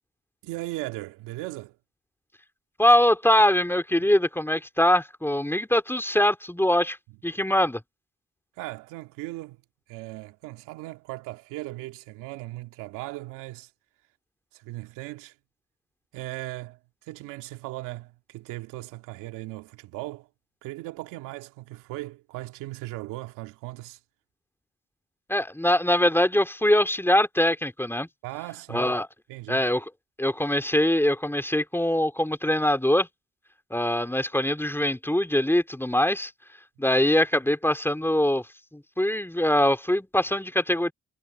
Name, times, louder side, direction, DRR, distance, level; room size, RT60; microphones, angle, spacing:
voice 1, 0.4-1.8 8.6-9.6 9.9-13.7 14.5-15.3 16.1-20.3 20.6-24.0 28.2-28.9 29.3-29.6, right 18 dB, 85° right, 2.4 m, -38 dB
voice 2, 2.8-7.0 7.2-7.8 25.3-28.1 28.7-29.1 29.5-29.9 30.2-33.1 33.7-36.3 36.8-40.9, left 1 dB, 5° left, 4.1 m, -23 dB
hypercardioid pair, 45°, 31 cm